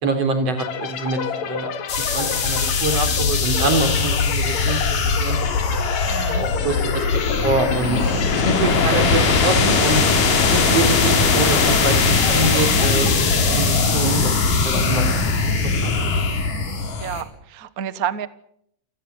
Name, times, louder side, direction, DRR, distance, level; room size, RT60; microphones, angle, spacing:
voice 1, 0.0-1.7 2.1-5.4 6.3-7.0 7.4-10.0 10.5-15.5 15.8-15.9, right 3 dB, 50° right, 7 dB, 4.6 m, -25 dB
sound 1, 0.6-14.1, left 7 dB, 60° left, 2.9 m, -31 dB
sound 2, 1.9-17.2, left 4 dB, 85° left, 5.2 m, -20 dB
voice 2, 6.1-6.5 17.0-18.3, right 9 dB, 70° right, 13 dB, 0.8 m, -29 dB
28.5 x 17.5 x 8.1 m, 0.72 s
omnidirectional pair, 3.7 m